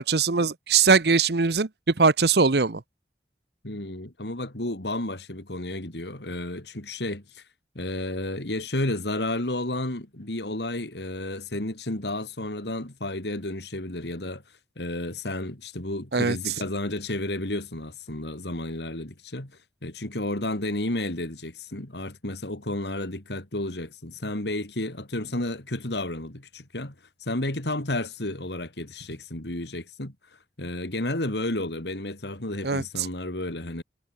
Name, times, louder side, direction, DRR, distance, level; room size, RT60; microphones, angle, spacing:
voice 1, 0.0-2.8 16.1-16.4 32.6-33.1, right 4 dB, 70° right, 0.9 m, -21 dB
voice 2, 3.6-7.4 7.7-14.4 14.8-19.5 19.8-26.9 27.2-30.1 30.6-33.8, left 1 dB, 75° left, 3.2 m, -32 dB
head